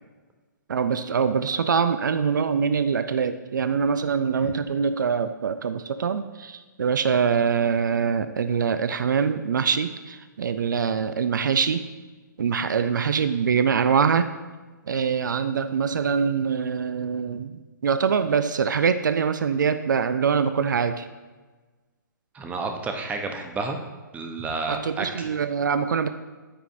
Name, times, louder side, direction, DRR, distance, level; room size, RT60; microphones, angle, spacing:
voice 1, 0.7-11.8 12.4-14.3 14.9-17.5 17.8-21.1 24.7-26.1, right 6 dB, 70° right, 11 dB, 0.5 m, -24 dB
voice 2, 22.3-23.8 24.1-25.3, right 3 dB, 15° right, 5 dB, 0.8 m, -31 dB
14.5 x 5.1 x 2.6 m, 1.3 s
figure-of-eight pair, 125°, 11 cm